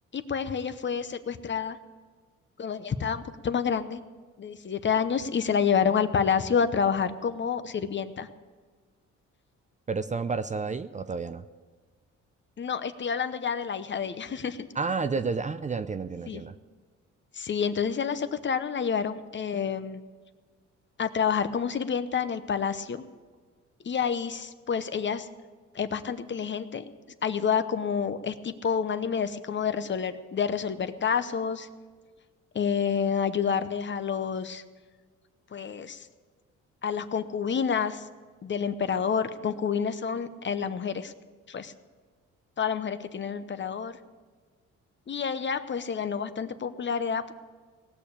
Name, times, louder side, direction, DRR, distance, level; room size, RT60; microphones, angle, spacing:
voice 1, 0.1-1.8 2.6-4.0 4.4-8.3 12.6-14.7 16.3-16.4 17.3-20.0 21.0-23.0 23.8-25.3 25.7-26.8 27.2-31.7 32.5-34.6 35.5-36.1 36.8-38.0 38.4-41.1 41.5-41.7 42.6-44.0 45.1-47.3, left 7 dB, 40° left, 11 dB, 0.8 m, -28 dB
voice 2, 9.9-11.4 14.8-16.5, right 4 dB, 25° right, 11 dB, 0.5 m, -30 dB
18.0 x 6.8 x 8.6 m, 1.5 s
cardioid pair, 90°, 30 cm